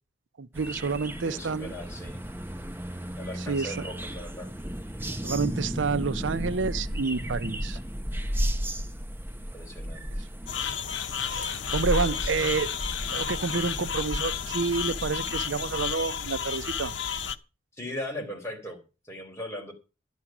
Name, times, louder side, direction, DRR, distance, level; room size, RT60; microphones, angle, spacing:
voice 1, 0.4-1.7 3.5-3.7 5.2-7.8 11.3-12.7 13.1-16.9, right 4 dB, 85° right, 0.7 m, -29 dB
sound 1, 0.5-15.9, equal, 10° right, 0.9 m, -34 dB
voice 2, 1.2-2.2 3.2-4.5 9.5-10.2 12.1-12.3 17.7-19.7, left 1 dB, 15° left, 4.0 m, -39 dB
sound 2, 10.5-17.4, left 7 dB, 80° left, 0.8 m, -32 dB
11.5 x 11.5 x 6.0 m
head